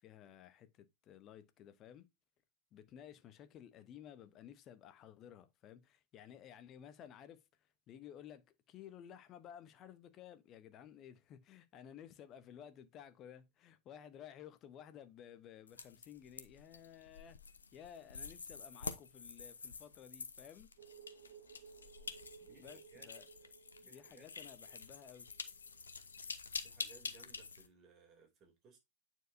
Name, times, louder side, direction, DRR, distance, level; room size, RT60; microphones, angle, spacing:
voice 1, 0.0-2.1 2.7-7.4 7.9-17.4 17.7-20.7 22.6-23.3 23.8-25.3, left 9 dB, 35° left, 0.9 m, -55 dB
sound 1, 15.7-27.7, left 5 dB, 75° left, 0.7 m, -48 dB
sound 2, 20.8-26.0 26.3-26.4, right 7 dB, 55° right, 1.1 m, -59 dB
voice 2, 22.5-23.1 23.8-24.3 26.6-28.8, right 5 dB, 30° right, 3.0 m, -63 dB
9.2 x 4.6 x 2.7 m
figure-of-eight pair, 90°, 0 cm